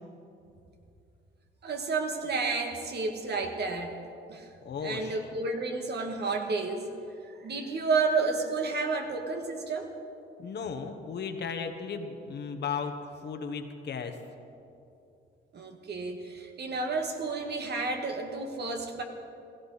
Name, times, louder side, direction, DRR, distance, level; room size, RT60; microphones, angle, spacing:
voice 1, 1.6-4.0 4.3-4.5 4.8-6.9 7.2-9.9 15.5-19.0, right 4 dB, 55° right, 3 dB, 1.8 m, -31 dB
voice 2, 4.6-5.2 10.4-12.9 13.2-14.1, left 6 dB, 60° left, 6 dB, 1.3 m, -35 dB
17.0 x 15.0 x 4.2 m, 2.7 s
cardioid pair, 90°, 20 cm